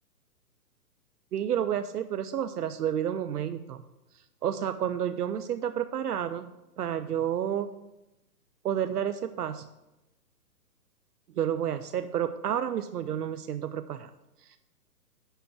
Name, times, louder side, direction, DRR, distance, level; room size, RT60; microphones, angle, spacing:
voice 1, 1.3-3.8 4.4-6.5 6.8-7.7 8.6-9.7 11.3-14.1 14.5-14.6, right 9 dB, 70° right, 10 dB, 0.7 m, -30 dB
10.0 x 3.5 x 7.0 m, 0.94 s
hypercardioid pair, 135°, 48 cm